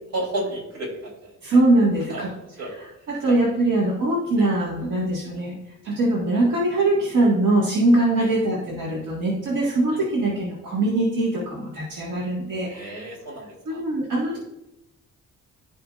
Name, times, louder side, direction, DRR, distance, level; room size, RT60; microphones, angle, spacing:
voice 1, 0.1-1.3 2.1-2.2 2.6-2.7 3.3-3.4 4.4-4.5 8.2-8.3 9.9-10.0 12.7-13.8, right 1 dB, 60° right, -1 dB, 3.1 m, -32 dB
voice 2, 1.4-2.3 2.6-5.6 5.8-13.0 13.7-14.4, right 2 dB, 75° right, -4 dB, 1.8 m, -22 dB
14.5 x 5.0 x 2.5 m, 0.91 s
wide cardioid pair, 175°, 30 cm